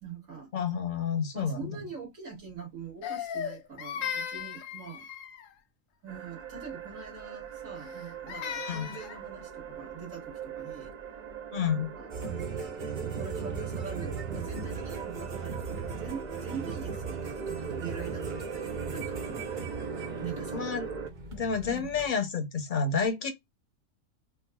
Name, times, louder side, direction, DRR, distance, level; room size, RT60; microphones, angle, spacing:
voice 1, 0.0-0.5 1.3-5.1 6.0-10.9 12.0-12.7 13.0-15.6 15.9-18.6 18.9-19.4 20.2-20.6 21.6-21.9, right 6 dB, 90° right, 2.5 m, -43 dB
voice 2, 0.5-1.7 8.7-8.9 11.5-11.9 20.5-20.8 21.3-23.3, left 6 dB, 45° left, 0.8 m, -29 dB
Crying sobbing, 3.0-5.5 7.8-9.2, left 8 dB, 80° left, 1.0 m, -37 dB
sound 1, 6.1-21.1, right 6 dB, 60° right, 0.4 m, -41 dB
sound 2, 12.1-22.1, right 5 dB, 45° right, 0.9 m, -38 dB
4.6 x 2.3 x 2.2 m
omnidirectional pair, 1.4 m